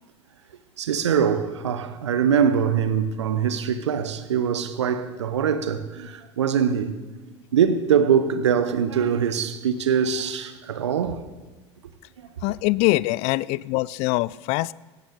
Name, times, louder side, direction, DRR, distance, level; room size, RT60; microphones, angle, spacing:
voice 1, 0.8-6.9 7.5-11.2, right 7 dB, 70° right, 1.1 m, -23 dB
voice 2, 12.4-14.7, left 20 dB, 45° left, 0.4 m, -23 dB
18.0 x 15.5 x 3.9 m
figure-of-eight pair, 75°, 15 cm